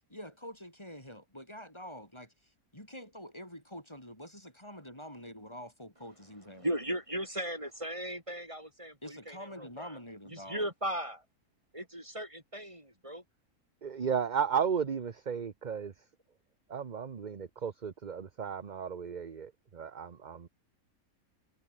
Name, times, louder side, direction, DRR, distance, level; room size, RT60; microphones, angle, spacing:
voice 1, 0.1-6.7 9.0-10.7, equal, 20° left, 6.1 m, -46 dB
voice 2, 6.6-9.9 10.3-11.2 11.7-13.2, equal, 20° right, 6.5 m, -37 dB
voice 3, 13.8-15.9 16.7-20.5, right 7 dB, 35° right, 0.9 m, -34 dB
omnidirectional pair, 1.5 m